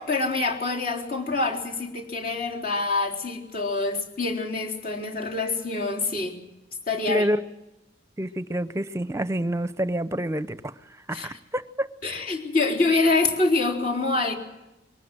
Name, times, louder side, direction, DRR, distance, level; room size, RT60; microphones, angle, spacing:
voice 1, 0.0-6.3 6.9-7.3 11.1-11.4 12.0-14.4, left 3 dB, 50° left, 0 dB, 3.9 m, -26 dB
voice 2, 7.1-7.4 8.2-10.7 11.1-11.9, right 1 dB, 15° right, 14 dB, 0.7 m, -27 dB
22.5 x 19.0 x 7.8 m, 0.96 s
head